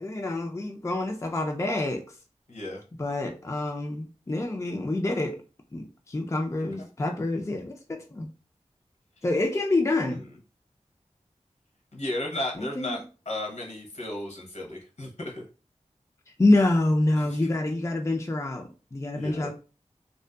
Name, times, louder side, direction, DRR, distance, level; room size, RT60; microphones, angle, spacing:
voice 1, 0.0-2.0 3.0-5.4 5.7-8.3 9.2-10.2 12.6-13.0 16.4-19.5, left 2 dB, 25° left, 0.4 m, -27 dB
voice 2, 2.5-2.8 6.8-6.9 10.1-10.2 11.9-15.4 17.2-17.4 19.1-19.5, left 1 dB, 65° left, 0.9 m, -34 dB
2.6 x 2.1 x 2.2 m
wide cardioid pair, 45°, 12 cm